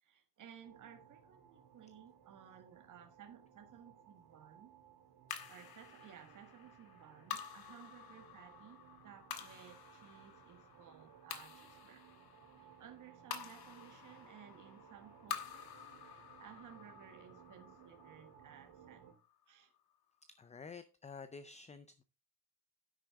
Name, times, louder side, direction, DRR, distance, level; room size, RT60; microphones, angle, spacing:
voice 1, 0.0-4.7 5.5-12.0 12.6-19.1 19.5-19.7, right 9 dB, 45° right, 1.5 m, -58 dB
sound 1, 0.6-19.1, right 8 dB, 75° right, 3.5 m, -61 dB
sound 2, 5.3-19.8, left 9 dB, 55° left, 1.9 m, -50 dB
voice 2, 20.4-22.0, left 5 dB, 15° left, 0.4 m, -50 dB
10.5 x 8.8 x 3.6 m
cardioid pair, 170°, 43 cm